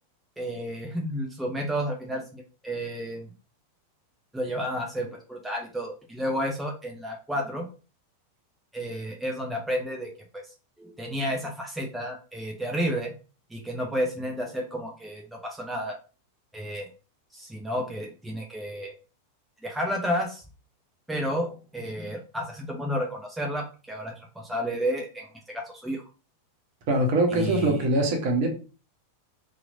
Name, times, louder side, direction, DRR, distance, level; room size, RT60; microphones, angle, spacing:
voice 1, 0.4-3.3 4.3-7.7 8.7-10.4 10.8-13.1 13.5-15.9 16.5-16.9 17.3-18.9 19.6-20.4 21.1-26.0 27.3-27.9, equal, 5° right, 0.6 m, -31 dB
voice 2, 26.9-28.5, right 2 dB, 45° right, 1.0 m, -23 dB
2.9 x 2.6 x 2.6 m
figure-of-eight pair, 90°, 0 cm